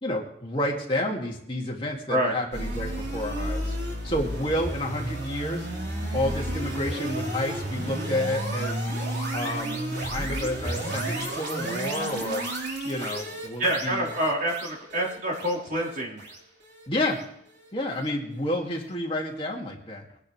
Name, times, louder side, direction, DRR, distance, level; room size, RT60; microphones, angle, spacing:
voice 1, 0.0-3.7 4.0-5.7 6.1-8.9 9.3-12.4 12.8-14.1 16.9-17.2 17.7-20.0, left 1 dB, 30° left, -2 dB, 2.5 m, -30 dB
sound 1, 2.5-17.7, right 1 dB, 65° right, 4.0 m, -32 dB
voice 2, 13.6-16.2, right 1 dB, 45° right, -3 dB, 4.3 m, -27 dB
21.5 x 10.5 x 3.4 m, 0.71 s
head